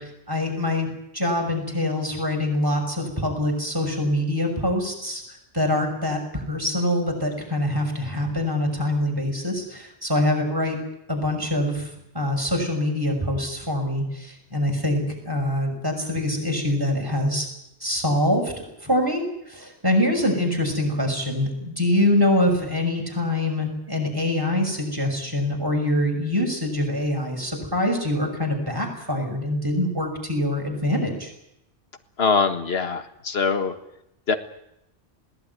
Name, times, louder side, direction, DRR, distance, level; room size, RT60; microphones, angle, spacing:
voice 1, 0.0-5.2 5.5-10.8 11.1-17.5 17.8-31.3, left 1 dB, 20° right, 2 dB, 6.1 m, -24 dB
voice 2, 32.2-33.7 34.3-34.4, left 5 dB, 60° left, 9 dB, 1.8 m, -23 dB
21.0 x 18.5 x 9.6 m, 0.82 s
omnidirectional pair, 1.2 m